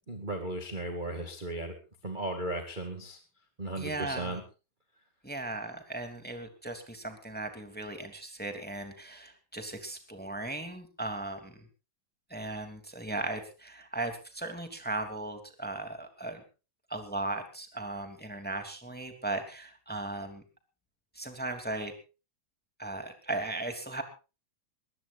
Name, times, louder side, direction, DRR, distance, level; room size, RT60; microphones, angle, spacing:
voice 1, 0.1-1.8 2.0-3.2 3.6-4.4, right 1 dB, 20° right, 4 dB, 1.6 m, -36 dB
voice 2, 3.7-4.4 5.2-11.7 12.3-16.4 16.9-20.4 21.1-21.9 22.8-24.0, right 2 dB, 5° left, 6 dB, 2.1 m, -37 dB
21.0 x 21.0 x 2.6 m, 0.33 s
omnidirectional pair, 4.3 m